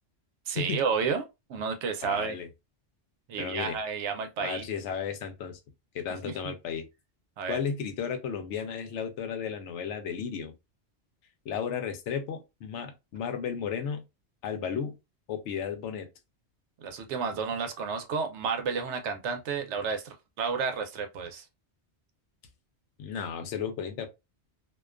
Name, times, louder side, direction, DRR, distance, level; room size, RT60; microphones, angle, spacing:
voice 1, 0.5-1.2 1.5-2.4 3.3-4.6 7.4-7.6 16.8-21.4, right 5 dB, 90° right, 0.9 m, -31 dB
voice 2, 2.0-2.5 3.4-3.8 4.4-5.6 5.9-6.9 7.5-10.5 11.4-14.0 14.4-14.9 15.3-16.1 23.0-24.1, left 7 dB, 90° left, 0.9 m, -34 dB
2.4 x 2.2 x 2.3 m
omnidirectional pair, 1.2 m